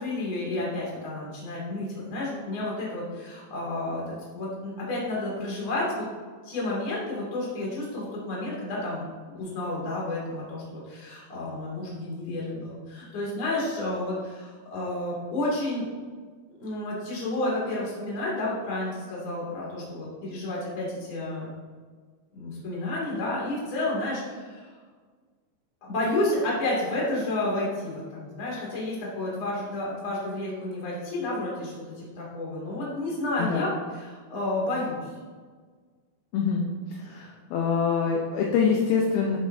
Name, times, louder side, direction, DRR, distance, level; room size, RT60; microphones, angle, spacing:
voice 1, 0.0-6.1 6.4-15.9 16.6-21.5 22.3-24.7 25.8-35.0, left 2 dB, 35° left, -5 dB, 2.7 m, -31 dB
voice 2, 36.3-36.7 37.0-39.4, left 6 dB, 75° left, -1 dB, 2.4 m, -25 dB
10.5 x 7.4 x 2.7 m, 1.5 s
omnidirectional pair, 5.0 m